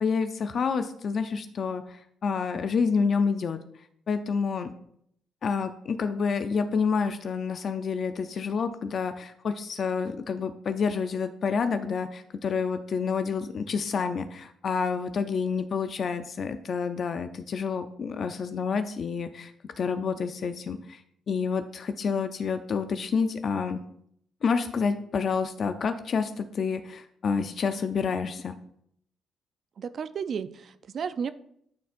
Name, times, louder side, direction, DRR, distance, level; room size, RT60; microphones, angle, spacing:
voice 1, 0.0-3.6 4.1-4.7 5.4-19.5 19.8-21.0 21.3-23.8 24.4-28.6, left 5 dB, 55° left, 9 dB, 0.5 m, -28 dB
voice 2, 29.8-31.3, right 6 dB, 55° right, 13 dB, 0.4 m, -33 dB
12.5 x 4.3 x 2.5 m, 0.69 s
cardioid pair, 90°, 0 cm